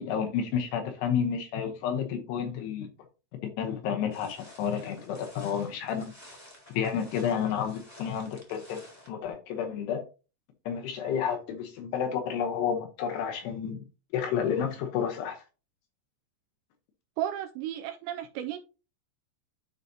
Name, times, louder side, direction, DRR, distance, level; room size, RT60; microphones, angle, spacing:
voice 1, 0.0-2.9 3.6-6.1 6.8-10.0 10.7-13.8 14.1-15.4, left 8 dB, 75° left, 2.7 m, -30 dB
sound 1, 4.1-9.1, left 1 dB, 5° left, 2.1 m, -52 dB
voice 2, 17.2-18.6, right 11 dB, 85° right, 2.5 m, -33 dB
12.0 x 4.0 x 2.7 m
omnidirectional pair, 5.4 m